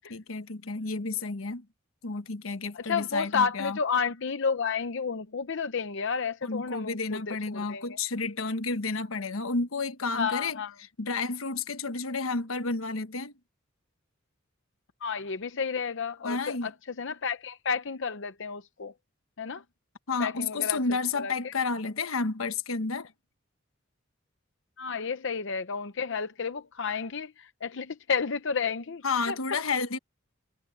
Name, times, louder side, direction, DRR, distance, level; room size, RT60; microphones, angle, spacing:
voice 1, 0.0-1.6 2.0-3.8 6.4-10.6 11.0-13.3 16.2-16.7 20.1-23.1 29.0-30.0, left 4 dB, 90° left, 1.3 m, -31 dB
voice 2, 2.7-8.0 10.1-10.7 15.0-16.7 17.0-18.9 19.4-19.6 20.2-20.8 21.1-21.5 24.8-29.4, left 5 dB, 65° left, 0.7 m, -31 dB
head